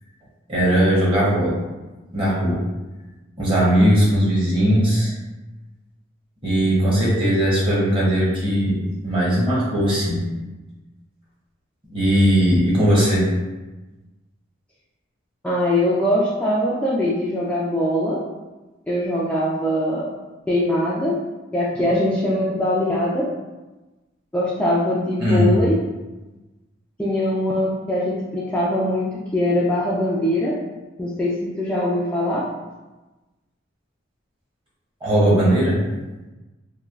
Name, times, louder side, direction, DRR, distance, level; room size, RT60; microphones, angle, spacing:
voice 1, 0.5-1.6 2.1-2.6 3.4-5.1 6.4-8.8 9.0-10.2 11.9-13.3 25.2-25.6 35.0-35.8, equal, 25° right, -7 dB, 0.9 m, -18 dB
voice 2, 15.4-18.2 18.9-20.1 20.5-21.2 21.5-23.3 24.3-25.8 27.0-30.6 31.0-32.5, left 1 dB, 5° left, -8 dB, 0.3 m, -22 dB
3.1 x 2.3 x 2.3 m, 1.1 s
head